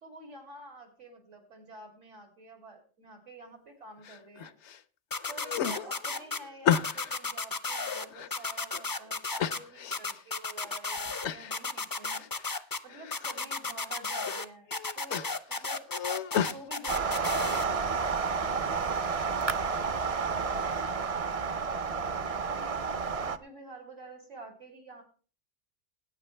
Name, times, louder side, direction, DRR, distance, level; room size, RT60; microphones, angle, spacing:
voice 1, 0.0-4.5 5.3-12.3 12.8-14.7 15.0-15.8 16.4-19.0 19.4-25.0, right 2 dB, 90° right, 2 dB, 3.3 m, -49 dB
sound 1, 4.0-4.8 5.2-7.2 7.6-8.8 9.4-10.2 10.6-10.7 11.2-11.6 11.9-12.6 12.9-13.4 13.9-14.3 14.7-16.6, left 9 dB, 75° left, 1.0 m, -33 dB
sound 2, 5.1-6.4 6.7-8.0 8.3-9.6 9.9-11.3 11.5-12.8 13.1-14.4 14.7-17.6, left 3 dB, 25° left, 0.5 m, -33 dB
sound 3, 16.9-23.4, right 5 dB, 40° right, 0.6 m, -30 dB
20.0 x 9.3 x 3.3 m, 0.39 s
omnidirectional pair, 1.2 m